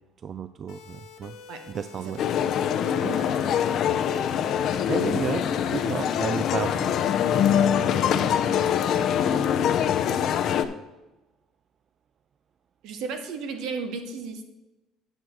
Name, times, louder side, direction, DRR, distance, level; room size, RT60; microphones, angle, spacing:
voice 1, 0.2-1.4 1.7-2.3 3.0-3.2 4.2-4.4 4.8-7.0, right 7 dB, 45° right, 12 dB, 0.4 m, -33 dB
sound 1, 0.7-9.2, left 6 dB, 75° left, 1.4 m, -47 dB
sound 2, 2.2-10.6, left 9 dB, 60° left, 0.6 m, -24 dB
voice 2, 9.3-9.9 12.8-14.4, right 4 dB, 70° right, 7 dB, 1.2 m, -35 dB
8.9 x 6.2 x 4.6 m, 1.0 s
supercardioid pair, 100°, 0 cm